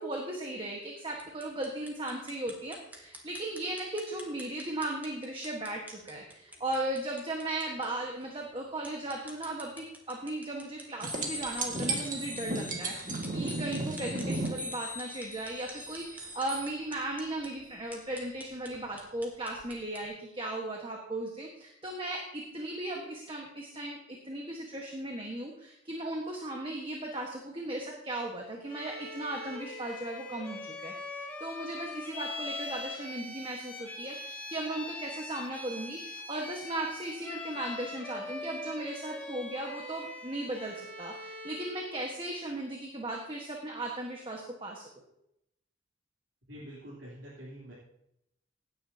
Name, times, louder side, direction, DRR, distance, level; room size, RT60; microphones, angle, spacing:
voice 1, 0.0-30.9 31.4-44.9, right 1 dB, 30° right, 0 dB, 1.5 m, -37 dB
sound 1, 1.1-20.1, right 1 dB, 10° right, 1.9 m, -52 dB
sound 2, 11.0-16.7 19.6-19.7, right 2 dB, 45° right, 1.9 m, -35 dB
Bowed string instrument, 28.7-41.9, left 2 dB, 10° left, 2.1 m, -42 dB
voice 2, 46.5-47.7, equal, 85° right, -7 dB, 3.5 m, -46 dB
17.5 x 9.5 x 2.9 m, 0.80 s
head